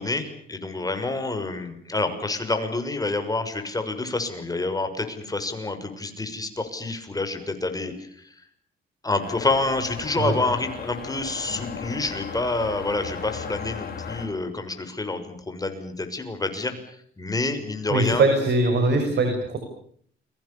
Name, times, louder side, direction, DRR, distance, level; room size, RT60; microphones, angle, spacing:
voice 1, 0.0-8.3 9.0-16.7 17.2-18.2, left 2 dB, 20° left, 7 dB, 6.4 m, -28 dB
sound 1, 9.2-14.3, left 6 dB, 50° left, 7.4 m, -36 dB
voice 2, 17.9-19.6, right 2 dB, 60° right, 5 dB, 6.6 m, -21 dB
30.0 x 23.5 x 7.2 m, 0.62 s
cardioid pair, 90°, 20 cm